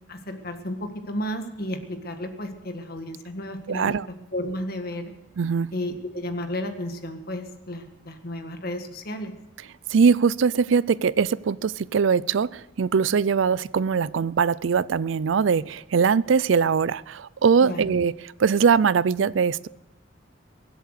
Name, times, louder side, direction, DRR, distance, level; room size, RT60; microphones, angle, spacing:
voice 1, 0.1-4.0 4.3-5.0 5.7-9.3 17.6-17.8, left 1 dB, 50° left, 1.8 m, -32 dB
voice 2, 3.7-4.1 5.4-5.7 9.9-19.7, right 6 dB, 80° right, 0.4 m, -21 dB
23.5 x 8.1 x 6.6 m
head